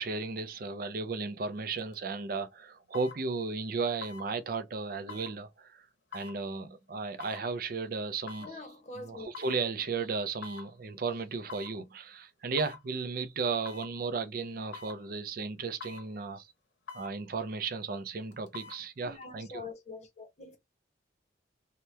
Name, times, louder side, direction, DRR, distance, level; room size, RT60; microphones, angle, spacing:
voice 1, 0.0-5.9 6.1-8.6 9.0-16.5 16.9-19.6, right 4 dB, 50° right, 0.4 m, -35 dB
sound 1, 1.8-1.9 2.9-3.2 4.0-4.3 5.1-5.3 6.1-6.4 7.2-7.4 8.3-8.5 9.3-9.6 10.4-10.7 11.5-11.8 12.6-12.8 13.6-13.9 14.7-15.0 15.8-16.1 16.9-17.1 18.3-18.8 19.2-19.3, left 6 dB, 80° left, 0.9 m, -45 dB
voice 2, 8.4-9.3 19.0-20.6, left 3 dB, 35° left, 0.8 m, -44 dB
2.8 x 2.1 x 3.2 m
head